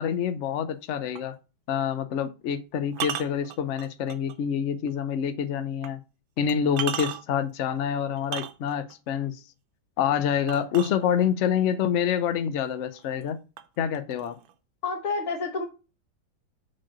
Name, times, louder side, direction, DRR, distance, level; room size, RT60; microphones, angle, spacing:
voice 1, 0.0-1.3 1.7-6.0 6.4-9.4 10.0-13.4 13.8-14.4, left 8 dB, 85° left, 0.6 m, -27 dB
sound 1, 1.2-1.3 2.9-4.4 4.9-5.0 5.8-5.9 6.5-7.4 8.2-9.0 10.5-11.4 12.4-12.5 12.9-13.3 13.6-14.5, right 10 dB, 80° right, 1.6 m, -35 dB
voice 2, 14.8-15.6, left 4 dB, 45° left, 1.6 m, -29 dB
6.4 x 4.2 x 6.1 m
omnidirectional pair, 2.2 m